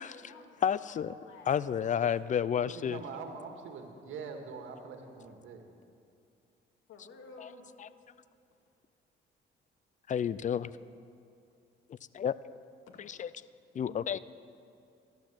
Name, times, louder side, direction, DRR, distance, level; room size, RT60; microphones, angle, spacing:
voice 1, 0.0-1.6 6.9-7.7 12.9-13.1, left 3 dB, 90° left, 1 dB, 2.3 m, -53 dB
voice 2, 0.6-1.1 1.5-3.0 10.1-10.7 12.1-12.3 13.1-13.3 13.7-14.2, left 8 dB, 40° left, 17 dB, 0.5 m, -30 dB
voice 3, 2.6-5.6, right 5 dB, 85° right, 4 dB, 1.8 m, -43 dB
14.5 x 11.5 x 7.5 m, 2.5 s
cardioid pair, 90°, 20 cm